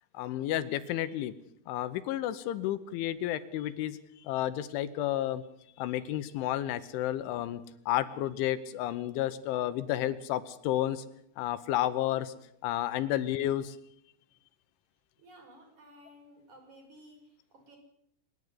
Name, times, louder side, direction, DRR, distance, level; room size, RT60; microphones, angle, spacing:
voice 1, 0.1-1.3 1.7-4.0 4.2-5.4 5.8-11.0 11.4-12.3 12.6-13.8, left 13 dB, 75° left, 13 dB, 3.1 m, -31 dB
voice 2, 15.2-17.8, equal, 35° right, 2 dB, 6.7 m, -55 dB
25.0 x 11.0 x 9.8 m, 0.74 s
omnidirectional pair, 5.9 m